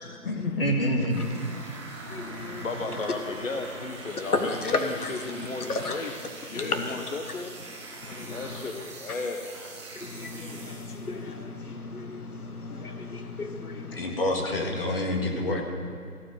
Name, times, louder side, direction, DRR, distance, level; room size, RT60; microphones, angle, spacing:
voice 1, 0.2-1.3 13.9-15.6, left 1 dB, 40° left, 0 dB, 1.8 m, -27 dB
sound 1, 1.0-11.2, right 2 dB, 20° right, 1.3 m, -43 dB
voice 2, 2.1-2.6 4.3-5.1 5.7-5.9 6.6-6.8 8.0-8.4 10.0-14.1, left 3 dB, 75° left, 5 dB, 1.6 m, -33 dB
voice 3, 2.6-6.1 6.5-7.5 8.3-9.7 13.9-14.1, left 3 dB, 55° left, 3 dB, 1.0 m, -34 dB
15.0 x 5.0 x 8.8 m, 2.3 s
figure-of-eight pair, 165°, 45 cm